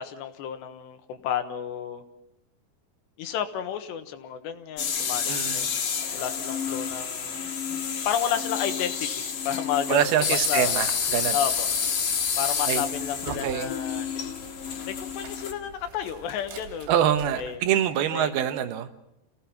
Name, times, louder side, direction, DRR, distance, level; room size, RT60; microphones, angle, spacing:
voice 1, 0.0-2.0 3.2-5.8 6.1-7.4 8.1-10.1 10.5-10.7 11.3-11.7 12.4-14.3 14.8-16.9 17.4-17.6 18.1-18.3, left 9 dB, 85° left, 7 dB, 3.5 m, -31 dB
sound 1, 4.8-15.5, left 6 dB, 55° left, 3.0 m, -29 dB
voice 2, 5.3-5.7 9.9-11.4 12.7-12.8 13.2-13.7 16.9-19.0, right 10 dB, 75° right, 9 dB, 2.9 m, -25 dB
sound 2, 10.3-17.6, right 5 dB, 90° right, 5.0 m, -46 dB
28.0 x 17.5 x 5.8 m, 0.84 s
omnidirectional pair, 4.8 m